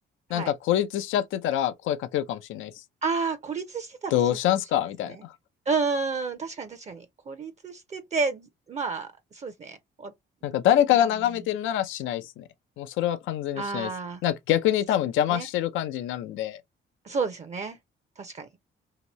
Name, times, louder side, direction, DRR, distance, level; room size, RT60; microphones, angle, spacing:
voice 1, 0.3-2.7 4.1-5.3 10.4-12.4 12.8-13.9 14.2-16.6, left 11 dB, 85° left, 0.5 m, -25 dB
voice 2, 3.0-4.2 5.7-9.1 9.4-10.1 13.6-14.2 15.3-15.5 17.1-17.8 18.2-18.5, right 4 dB, 35° right, 0.5 m, -30 dB
2.9 x 2.6 x 2.9 m
cardioid pair, 90°, 20 cm